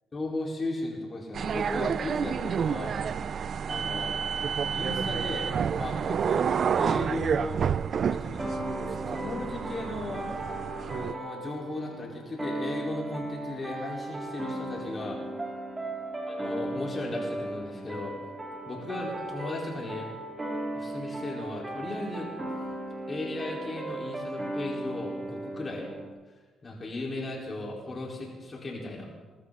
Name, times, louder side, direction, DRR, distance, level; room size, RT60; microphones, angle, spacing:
voice 1, 0.1-2.9 3.7-4.1 4.7-5.5 5.8-6.5 6.7-7.7 8.1-8.4 8.7-10.3 10.9-15.2 16.3-18.1 18.6-20.1 20.7-22.3 23.1-25.9 26.6-29.1, left 2 dB, 30° left, -3 dB, 4.8 m, -36 dB
sound 1, 1.3-11.1, right 7 dB, 55° right, 0.4 m, -29 dB
sound 2, 8.4-26.1, right 1 dB, 20° right, 2.9 m, -36 dB
21.0 x 13.5 x 4.2 m, 1.3 s
cardioid pair, 90°, 0 cm